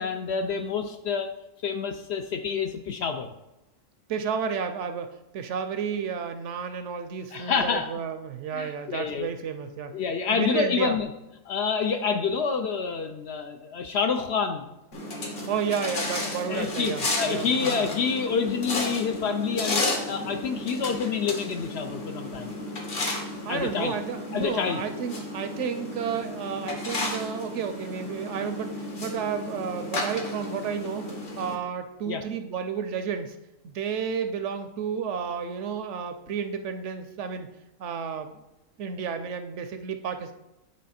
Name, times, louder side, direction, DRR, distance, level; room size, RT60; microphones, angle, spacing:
voice 1, 0.0-1.3 1.6-3.3 7.3-7.9 8.5-9.3 9.9-11.1 11.5-14.6 16.5-19.8 20.1-22.6 23.5-23.9 24.3-24.8 32.1-32.2, left 6 dB, 65° left, 6 dB, 0.7 m, -28 dB
voice 2, 4.1-10.0 10.3-11.0 15.5-17.8 23.4-33.4 33.6-37.5 37.8-38.3 38.8-40.3, right 7 dB, 70° right, 8 dB, 0.8 m, -32 dB
sound 1, 14.9-31.5, left 2 dB, 45° left, 1.2 m, -33 dB
9.4 x 3.3 x 4.2 m, 0.94 s
omnidirectional pair, 1.4 m